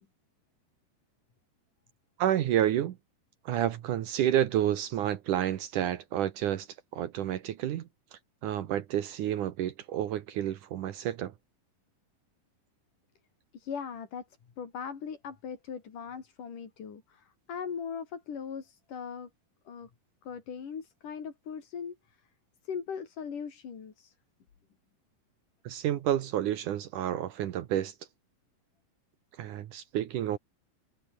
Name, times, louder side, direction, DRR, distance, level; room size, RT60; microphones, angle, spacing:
voice 1, 2.2-3.0 3.5-6.7 6.9-11.3 25.6-27.9 29.4-30.4, right 11 dB, 70° right, 2.6 m, -30 dB
voice 2, 13.5-14.3 14.6-19.3 19.7-19.9 20.2-22.2 22.6-24.1, left 6 dB, 65° left, 4.9 m, -39 dB
omnidirectional pair, 4.0 m